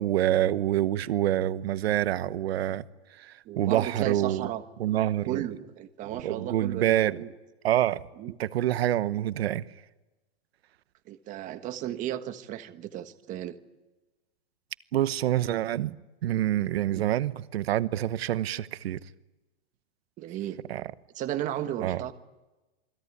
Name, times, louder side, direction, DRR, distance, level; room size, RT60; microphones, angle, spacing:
voice 1, 0.0-2.8 3.2-4.5 4.8-5.5 6.2-7.2 7.6-8.0 8.4-9.7 14.9-16.0 16.2-19.0 20.7-20.8 21.8-22.0, right 12 dB, 85° right, 1.1 m, -26 dB
voice 2, 3.4-4.6 5.2-7.3 8.2-8.3 11.1-13.6 16.9-17.0 20.2-20.6 21.1-22.1, right 12 dB, 25° right, 1.4 m, -34 dB
27.5 x 21.0 x 9.8 m
supercardioid pair, 160°, 30 cm